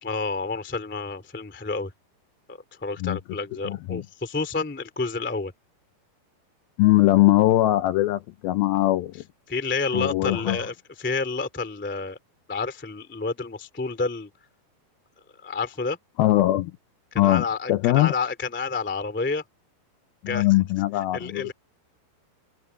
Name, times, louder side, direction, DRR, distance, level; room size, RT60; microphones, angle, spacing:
voice 1, 0.0-1.9 2.5-5.5 9.5-12.2 12.5-14.3 15.4-16.0 17.1-19.4 20.2-20.5 21.1-21.5, left 4 dB, 10° left, 0.5 m, -29 dB
voice 2, 3.7-4.0 6.8-9.2 9.9-10.6 16.2-16.7 17.2-18.1 20.2-21.5, left 16 dB, 85° left, 2.2 m, -21 dB
omnidirectional pair, 5.0 m